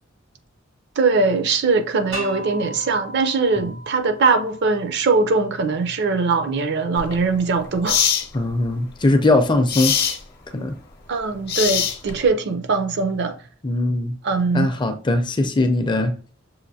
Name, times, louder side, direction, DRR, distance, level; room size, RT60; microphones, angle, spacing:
voice 1, 1.0-8.1 11.1-13.4 13.9-14.0 14.2-14.7, right 4 dB, 60° right, 0.5 m, -21 dB
sound 1, 2.1-5.0, right 1 dB, 85° right, 1.7 m, -36 dB
sound 2, 7.0-7.1 7.9-8.3 9.7-10.2 11.5-12.2, left 8 dB, 55° left, 0.8 m, -21 dB
voice 2, 8.3-10.0 10.5-10.7 13.6-14.2 14.5-16.1, left 2 dB, 25° left, 0.4 m, -20 dB
6.4 x 2.5 x 2.7 m
head